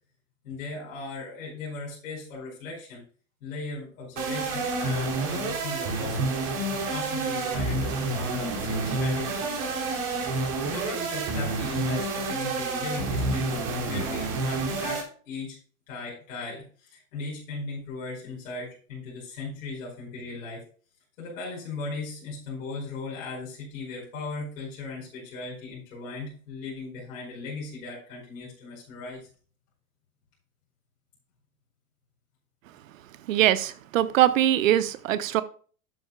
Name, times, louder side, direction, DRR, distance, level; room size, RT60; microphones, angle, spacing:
voice 1, 0.4-3.0 3.4-10.0 10.3-15.6 15.9-20.6 21.2-29.3, left 3 dB, 65° left, -5 dB, 5.1 m, -38 dB
sound 1, 4.2-15.0, right 3 dB, 45° right, 3.5 m, -29 dB
voice 2, 33.3-35.4, right 12 dB, 60° right, 16 dB, 0.8 m, -22 dB
12.5 x 8.0 x 2.2 m, 0.41 s
figure-of-eight pair, 90°, 44 cm